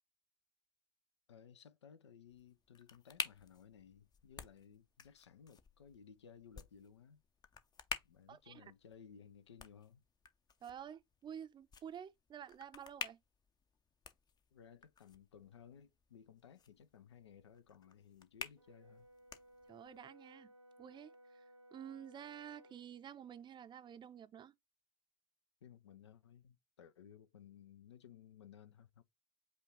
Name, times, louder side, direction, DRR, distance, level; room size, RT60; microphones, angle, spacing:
voice 1, 1.3-7.2 8.0-10.0 14.5-19.1 25.6-29.0, left 8 dB, 80° left, 0.4 m, -59 dB
sound 1, 2.3-20.0, left 6 dB, 30° left, 0.6 m, -51 dB
voice 2, 8.3-8.6 10.6-13.2 19.7-20.5 20.8-24.5, right 9 dB, 30° right, 0.5 m, -51 dB
Brass instrument, 18.6-22.8, right 1 dB, 90° right, 0.9 m, -62 dB
5.2 x 2.3 x 3.6 m
figure-of-eight pair, 60°, 14 cm